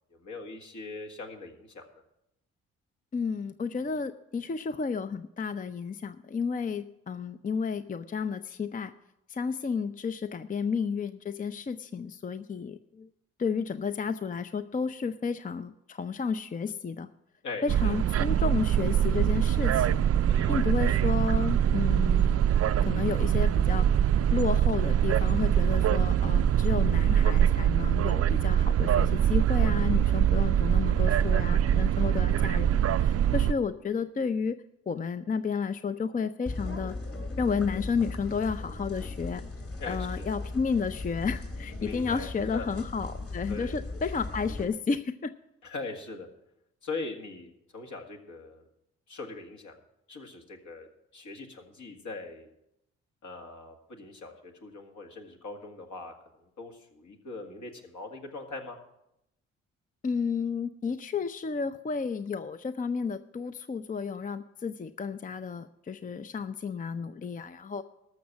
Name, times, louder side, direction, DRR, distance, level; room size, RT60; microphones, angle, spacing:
voice 1, 0.1-1.8 17.4-18.0 20.3-21.0 39.8-40.3 41.8-42.7 43.5-43.8 45.6-46.3 46.8-48.6 49.1-49.8 50.1-50.9 51.1-52.5 53.2-56.1 56.4-58.8, left 3 dB, 60° left, 2 dB, 2.0 m, -41 dB
voice 2, 3.1-8.9 9.3-13.1 13.4-17.1 17.6-20.0 20.5-22.5 22.8-34.6 34.9-36.9 37.4-39.4 39.9-45.3 60.0-67.8, left 5 dB, 25° left, 12 dB, 0.5 m, -32 dB
sound 1, 17.7-33.5, right 9 dB, 45° right, 0.5 m, -24 dB
sound 2, 36.5-44.6, left 2 dB, 45° left, 2.6 m, -37 dB
13.5 x 6.4 x 7.2 m, 0.84 s
hypercardioid pair, 45°, 33 cm